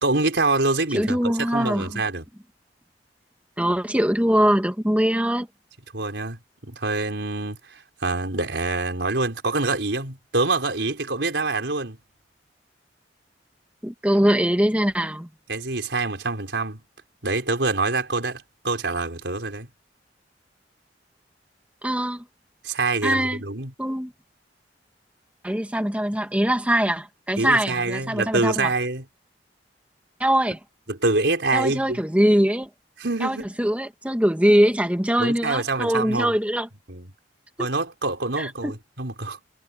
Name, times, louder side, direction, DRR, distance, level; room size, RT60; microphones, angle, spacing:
voice 1, 0.0-2.3 5.9-12.0 15.5-16.8 17.2-19.7 22.6-23.7 27.4-29.0 30.9-32.0 33.0-33.6 35.2-36.3 36.9-37.1 37.6-39.4, right 3 dB, 85° right, 4.2 m, -26 dB
voice 2, 0.9-1.9 3.6-5.5 13.8-15.3 21.8-22.2 23.0-23.4 23.8-24.1 25.4-28.7 30.2-30.6 31.5-32.7 33.2-36.7 38.4-38.7, equal, 10° right, 1.7 m, -22 dB
head